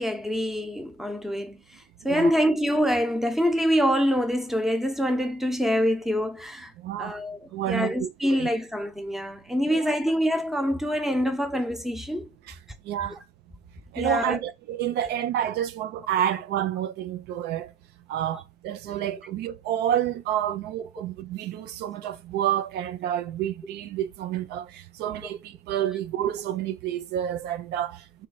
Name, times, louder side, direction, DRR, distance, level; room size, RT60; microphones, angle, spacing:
voice 1, 0.0-6.7 7.0-7.4 7.7-12.3 14.0-14.4, equal, ahead, 0.7 m, -25 dB
voice 2, 6.8-7.2 7.5-8.5 9.7-9.9 12.4-12.6 12.8-13.2 13.9-17.7 18.1-28.3, right 11 dB, 75° right, 0.4 m, -29 dB
3.4 x 3.1 x 3.9 m
cardioid pair, 110°, 17 cm